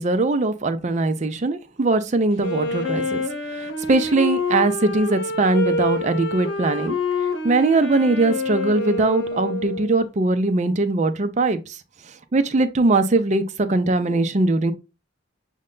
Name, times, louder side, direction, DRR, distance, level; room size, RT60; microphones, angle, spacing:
voice 1, 0.0-3.2 3.9-6.9 7.4-11.6 12.3-14.7, right 2 dB, 40° right, 0.5 m, -20 dB
Wind instrument woodwind instrument, 2.4-10.1, left 2 dB, 90° left, 1.0 m, -27 dB
6.3 x 2.2 x 3.7 m
head